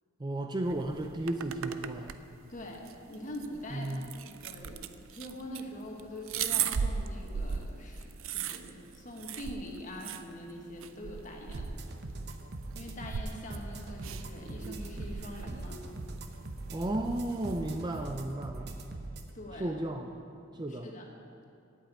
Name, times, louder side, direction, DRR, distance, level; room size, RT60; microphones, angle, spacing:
voice 1, 0.2-2.1 3.7-4.1 16.7-18.7 19.6-20.1 20.5-20.9, right 1 dB, 20° right, 4 dB, 0.4 m, -34 dB
sound 1, 0.6-18.2, right 7 dB, 75° right, 0.5 m, -39 dB
voice 2, 2.5-11.7 12.7-15.9 19.3-19.8 20.7-21.1, left 1 dB, 35° left, 0 dB, 1.4 m, -44 dB
sound 2, 11.5-19.3, right 2 dB, 50° right, 0.8 m, -41 dB
8.4 x 8.1 x 9.0 m, 2.6 s
head